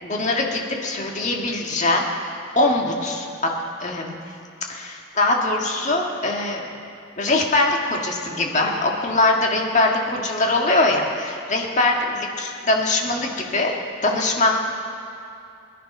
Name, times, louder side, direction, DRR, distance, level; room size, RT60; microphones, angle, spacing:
voice 1, 0.0-2.0 2.5-4.2 4.7-6.7 7.2-13.8 14.0-14.6, left 2 dB, 35° left, 0 dB, 1.7 m, -22 dB
22.0 x 10.5 x 5.5 m, 2.6 s
head